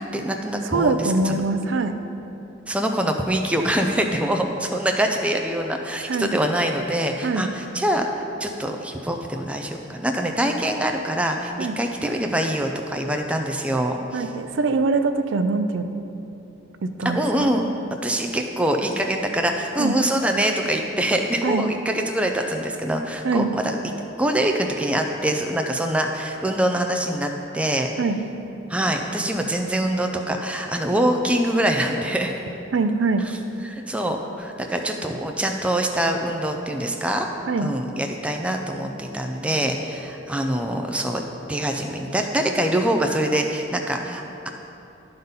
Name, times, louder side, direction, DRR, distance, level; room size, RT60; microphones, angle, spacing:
voice 1, 0.0-1.4 2.7-14.3 17.0-17.6 17.9-23.8 24.2-27.9 28.7-32.3 33.6-37.3 37.6-41.2 41.5-44.5, right 1 dB, 5° right, 3 dB, 0.4 m, -24 dB
voice 2, 0.7-2.0 6.1-6.3 7.2-7.4 11.6-11.7 14.1-15.9 16.8-17.5 19.8-20.0 21.4-21.7 23.2-23.5 28.0-28.2 32.7-33.3 37.5-37.7, right 3 dB, 80° right, 8 dB, 0.5 m, -23 dB
12.0 x 4.0 x 5.4 m, 2.9 s
head